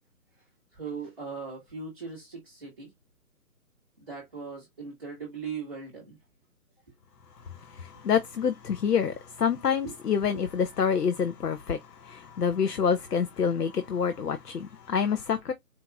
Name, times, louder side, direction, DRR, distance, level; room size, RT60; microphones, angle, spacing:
voice 1, 0.7-2.9 4.0-6.2 9.8-9.9 10.3-10.4, right 5 dB, 5° right, 1.0 m, -39 dB
voice 2, 7.4-15.5, left 7 dB, 85° left, 0.8 m, -27 dB
4.6 x 2.5 x 3.4 m
hypercardioid pair, 165°, 46 cm